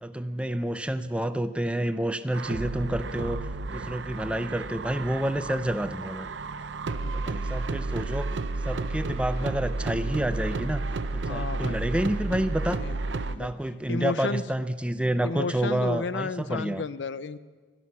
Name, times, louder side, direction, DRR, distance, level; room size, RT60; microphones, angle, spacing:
voice 1, 0.0-6.3 7.1-8.3 8.6-10.8 11.1-12.8 13.3-16.8, right 1 dB, 5° right, 12 dB, 0.5 m, -29 dB
sound 1, 2.3-13.4, right 3 dB, 85° right, 0.6 m, -32 dB
voice 2, 11.3-12.0 12.8-13.5 13.9-14.4 15.2-17.4, left 4 dB, 80° left, 16 dB, 0.5 m, -33 dB
16.0 x 12.0 x 7.3 m, 1.5 s
head